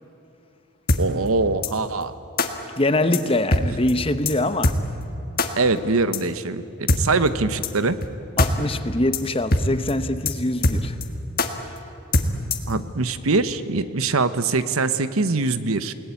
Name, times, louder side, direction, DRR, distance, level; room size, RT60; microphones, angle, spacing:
sound 1, 0.9-1.0 1.6-1.7 2.4-2.5 3.1-3.2 3.5-3.6 3.9-4.0 4.3-4.4 4.6-4.8 5.4-5.5 6.1-6.2 6.9-7.0 7.6-7.7 8.0-8.1 8.4-8.5 8.8-8.9 9.1-9.2 9.5-9.6 9.9-10.0 10.3-10.4 10.6-11.1 11.4-11.5 12.1-12.7, left 2 dB, 45° left, 1.6 m, -20 dB
voice 1, 1.0-2.1 5.6-8.0 12.7-15.9, right 3 dB, 80° right, 12 dB, 1.0 m, -23 dB
voice 2, 2.8-4.7 8.4-10.9, left 1 dB, 25° left, 10 dB, 0.9 m, -23 dB
29.0 x 19.0 x 8.4 m, 2.8 s
head